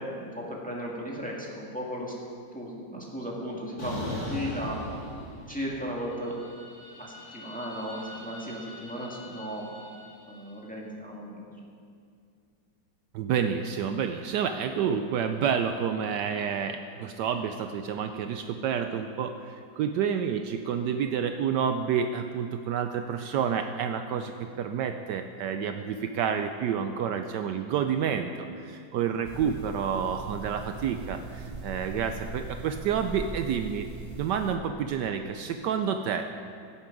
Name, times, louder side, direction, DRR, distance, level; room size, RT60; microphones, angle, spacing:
voice 1, 0.0-2.1 2.5-4.8 5.5-6.3 7.0-9.6 10.3-11.5, equal, 5° left, -3 dB, 1.6 m, -36 dB
sound 1, 3.8-5.7 6.1-10.4, left 1 dB, 50° left, 3.8 m, -40 dB
voice 2, 13.1-33.9 34.2-36.3, right 7 dB, 75° right, 7 dB, 1.1 m, -29 dB
sound 2, 29.2-34.6, right 3 dB, 35° right, 0.7 m, -40 dB
17.0 x 8.3 x 5.2 m, 2.3 s
omnidirectional pair, 2.0 m